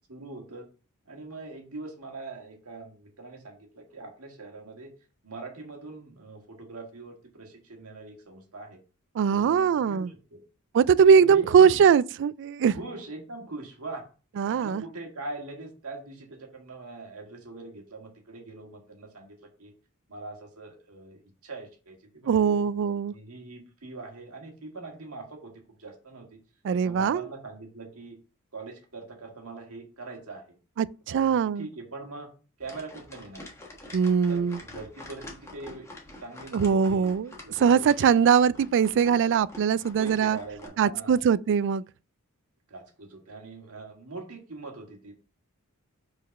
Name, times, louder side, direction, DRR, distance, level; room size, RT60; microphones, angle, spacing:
voice 1, 0.1-0.7 1.1-4.9 5.2-8.8 9.3-10.4 11.2-11.8 12.7-14.0 14.5-19.7 20.1-22.6 23.1-25.5 25.8-26.4 26.8-28.2 28.5-30.4 31.1-32.3 32.6-33.4 34.3-35.9 36.2-37.2 37.4-37.9 40.0-41.2 42.7-45.1, right 3 dB, 75° right, 1.8 m, -42 dB
voice 2, 9.2-10.1 10.7-12.7 14.4-14.8 22.3-23.1 26.6-27.3 30.8-31.7 33.9-34.6 36.5-40.4 40.8-41.8, right 7 dB, 55° right, 0.3 m, -21 dB
sound 1, 32.6-40.7, left 1 dB, 15° left, 1.4 m, -46 dB
5.2 x 4.0 x 5.3 m
head